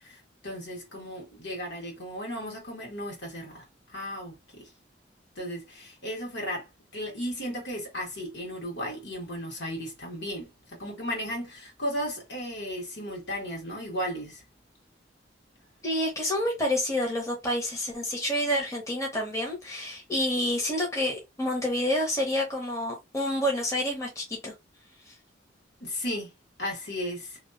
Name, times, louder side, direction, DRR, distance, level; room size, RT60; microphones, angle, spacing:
voice 1, 0.0-3.6 3.9-4.7 5.3-6.7 6.9-14.4 25.8-26.3 26.6-27.4, equal, 70° left, 1.5 m, -35 dB
voice 2, 15.8-24.5 25.1-25.2, left 1 dB, 15° left, 0.8 m, -28 dB
2.8 x 2.3 x 2.5 m
head